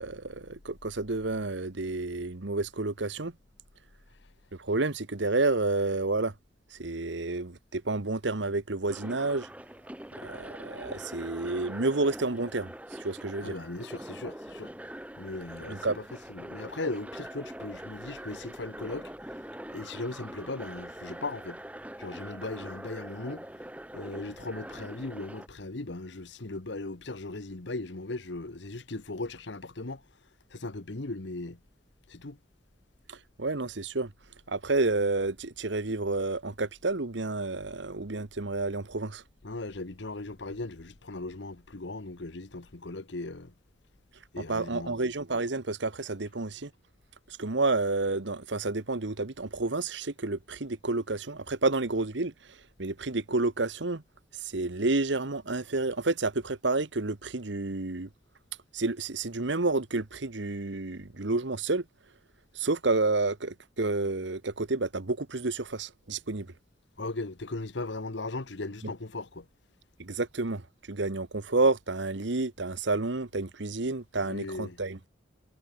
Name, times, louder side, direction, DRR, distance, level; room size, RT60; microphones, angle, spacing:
voice 1, 0.0-3.3 4.6-6.3 6.7-9.5 10.2-13.5 15.7-16.0 33.1-34.1 34.5-39.2 44.5-46.7 47.3-54.0 54.4-58.1 58.7-61.8 62.5-66.5 70.0-70.6 70.9-75.1, right 3 dB, 65° right, 1.2 m, -30 dB
sound 1, 8.9-25.5, right 1 dB, 5° right, 1.6 m, -43 dB
voice 2, 13.4-14.7 15.2-16.0 16.3-19.1 19.7-21.6 22.0-23.5 23.9-30.0 30.5-31.6 32.1-32.4 39.4-43.5 44.3-45.0 67.0-69.5 74.2-74.8, left 2 dB, 60° left, 1.2 m, -38 dB
head